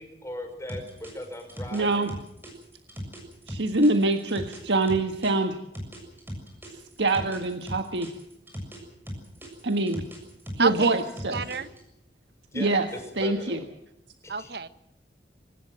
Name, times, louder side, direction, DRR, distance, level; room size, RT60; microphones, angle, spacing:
voice 1, 0.0-2.1 12.5-13.6 14.2-14.5, left 1 dB, 15° left, 5 dB, 5.3 m, -39 dB
sound 1, 0.7-5.3 5.7-8.8 9.1-11.8, equal, 10° right, 7.0 m, -38 dB
voice 2, 1.7-2.1 3.5-5.6 7.0-8.1 9.6-10.0 10.6-11.4 12.5-12.9 13.2-13.6, right 2 dB, 90° right, 6 dB, 1.6 m, -24 dB
voice 3, 10.6-11.0 11.3-11.7 14.3-14.7, right 4 dB, 65° right, 12 dB, 1.4 m, -28 dB
24.0 x 19.5 x 7.7 m, 0.78 s
head